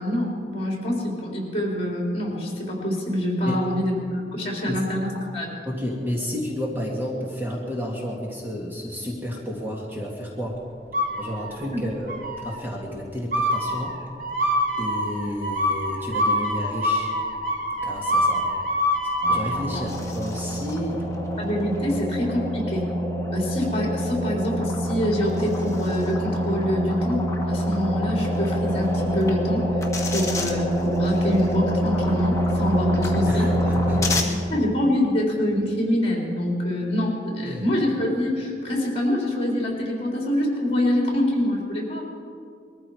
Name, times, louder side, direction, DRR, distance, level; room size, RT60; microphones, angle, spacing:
voice 1, 0.0-5.6 19.7-19.8 21.4-22.9 23.3-29.7 30.1-33.5 33.9-42.0, left 1 dB, 35° left, -1 dB, 3.7 m, -25 dB
voice 2, 3.5-3.9 4.7-4.8 5.7-10.6 11.2-12.2 12.4-14.0 14.8-17.1 17.8-18.5 19.3-21.0 21.9-22.0 33.3-34.1 37.4-37.7, equal, 10° right, -3 dB, 2.0 m, -31 dB
sound 1, 10.9-11.7 12.1-12.6 13.3-19.6, equal, 55° right, 2.1 m, -25 dB
sound 2, 19.2-34.2, equal, 20° left, 1.8 m, -25 dB
21.5 x 14.0 x 4.9 m, 2.2 s
head